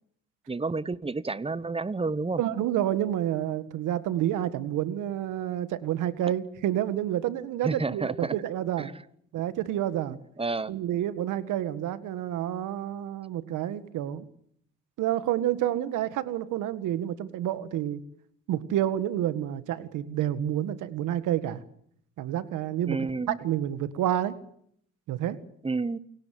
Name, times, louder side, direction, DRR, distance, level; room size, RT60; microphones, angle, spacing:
voice 1, 0.5-2.4 7.6-8.3 8.8-9.0 10.4-10.7 22.9-23.4 25.6-26.0, right 3 dB, 20° right, 1.1 m, -30 dB
voice 2, 2.4-8.9 9.3-10.2 10.7-14.3 15.0-18.0 18.5-21.6 22.2-23.0 23.3-24.4 25.1-25.4, right 12 dB, 90° right, 1.8 m, -29 dB
29.0 x 18.5 x 7.7 m
cardioid pair, 90°, 30 cm